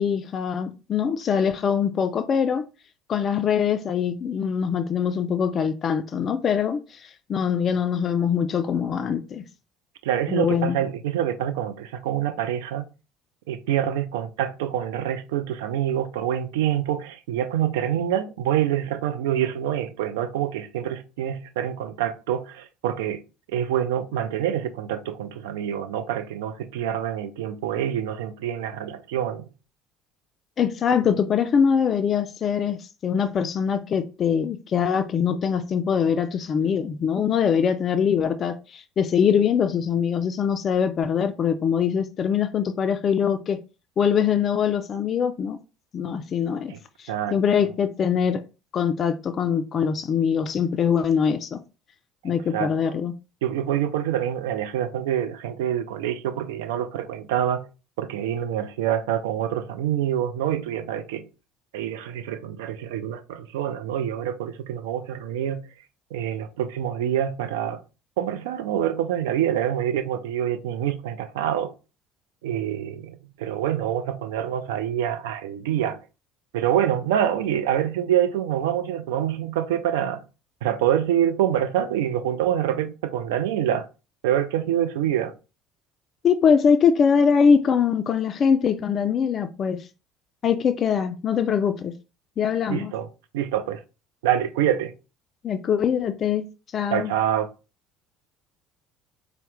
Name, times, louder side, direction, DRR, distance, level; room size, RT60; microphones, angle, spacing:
voice 1, 0.0-2.6 3.1-9.4 10.3-10.8 30.6-43.6 44.0-45.6 45.9-46.7 47.0-48.4 48.7-51.6 52.2-53.1 86.2-89.9 90.4-91.9 92.4-92.9 95.4-96.4 96.7-97.1, left 7 dB, 40° left, 0.3 m, -23 dB
voice 2, 10.0-12.8 13.5-23.2 23.5-29.5 46.7-46.8 47.1-47.7 52.2-53.0 53.4-57.7 58.0-61.3 61.7-65.7 66.1-67.8 68.2-71.7 72.4-76.0 76.5-80.2 80.6-83.9 84.2-85.3 92.7-93.1 93.3-93.8 94.2-94.9 96.9-97.5, right 10 dB, 65° right, 0.3 m, -26 dB
4.2 x 2.1 x 3.2 m
figure-of-eight pair, 60°, 0 cm